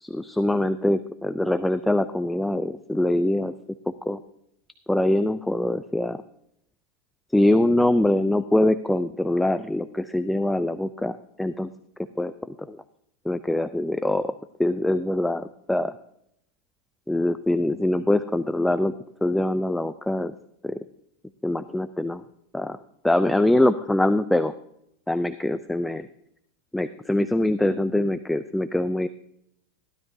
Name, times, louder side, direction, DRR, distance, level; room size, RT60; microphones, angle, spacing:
voice 1, 0.0-3.5 4.1-4.2 4.9-6.2 7.3-11.7 12.2-12.8 13.3-14.3 14.6-15.9 17.1-18.9 19.2-20.3 20.6-20.8 21.4-22.2 22.5-22.8 23.0-24.5 25.1-26.1 26.7-29.1, left 1 dB, 5° left, 11 dB, 0.3 m, -23 dB
15.5 x 12.0 x 2.7 m, 0.76 s
supercardioid pair, 150°, 0 cm